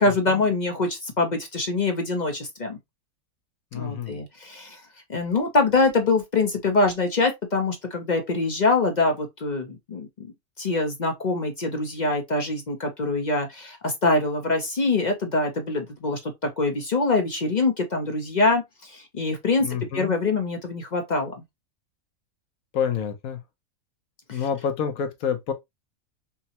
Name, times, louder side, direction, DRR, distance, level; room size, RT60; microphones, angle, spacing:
voice 1, 0.0-2.8 3.7-4.8 5.1-10.3 10.6-21.4 24.3-24.4, left 3 dB, 45° left, 0.6 m, -24 dB
voice 2, 3.7-4.2 19.6-20.1 22.7-23.4 24.3-25.5, left 7 dB, 80° left, 1.2 m, -28 dB
5.5 x 2.1 x 2.8 m
omnidirectional pair, 1.5 m